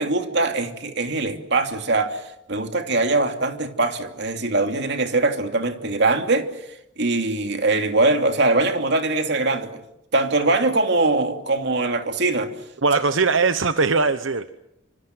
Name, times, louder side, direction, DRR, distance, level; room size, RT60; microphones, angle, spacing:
voice 1, 0.0-6.5 7.0-9.7 10.1-12.5, right 2 dB, 60° right, 2.9 m, -22 dB
voice 2, 12.8-14.5, right 4 dB, 85° right, 1.0 m, -20 dB
27.0 x 25.5 x 7.9 m
head